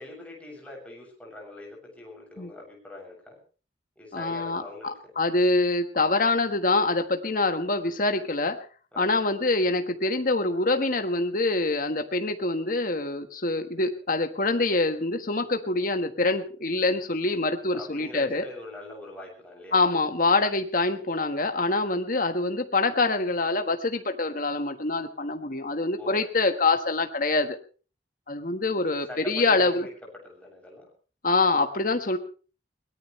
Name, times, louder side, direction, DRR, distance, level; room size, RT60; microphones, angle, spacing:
voice 1, 0.0-3.4 4.0-4.9 8.9-9.2 17.7-19.8 26.0-26.2 29.1-29.9 30.2-30.9, left 1 dB, 10° left, -1 dB, 7.4 m, -42 dB
voice 2, 4.1-8.6 9.0-18.4 19.7-27.6 28.3-29.9 31.2-32.2, left 3 dB, 50° left, 6 dB, 1.5 m, -25 dB
22.5 x 18.5 x 3.3 m, 0.38 s
head